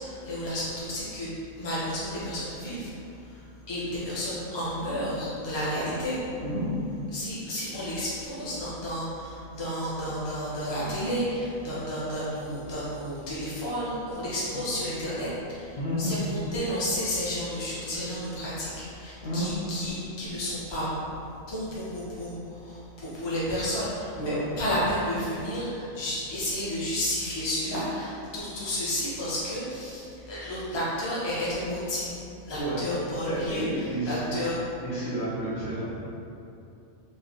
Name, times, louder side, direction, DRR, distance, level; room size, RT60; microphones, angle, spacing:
voice 1, 0.0-3.4 3.7-6.4 7.1-21.1 21.5-32.2 32.5-34.6, equal, 25° left, -9 dB, 0.8 m, -31 dB
voice 2, 15.7-16.2 19.2-19.5 24.2-24.4 25.6-25.8 32.6-32.8 33.3-34.5 34.8-35.8, right 1 dB, 55° left, -10 dB, 1.0 m, -31 dB
3.3 x 2.9 x 3.8 m, 2.7 s
omnidirectional pair, 1.4 m